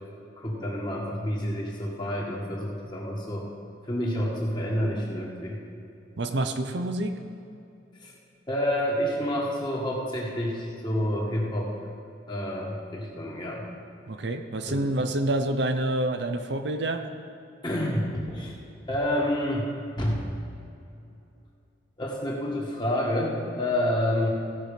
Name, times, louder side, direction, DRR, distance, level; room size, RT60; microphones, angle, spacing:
voice 1, 0.4-3.5 3.8-5.6 8.0-8.1 8.5-11.7 12.3-13.6 14.7-14.9 17.6-18.6 18.9-19.7 20.0-20.3 22.0-24.3, equal, 25° left, -3 dB, 1.8 m, -28 dB
voice 2, 6.2-7.2 14.1-17.1, right 1 dB, 65° right, 7 dB, 0.6 m, -27 dB
16.0 x 6.0 x 5.1 m, 2.7 s
head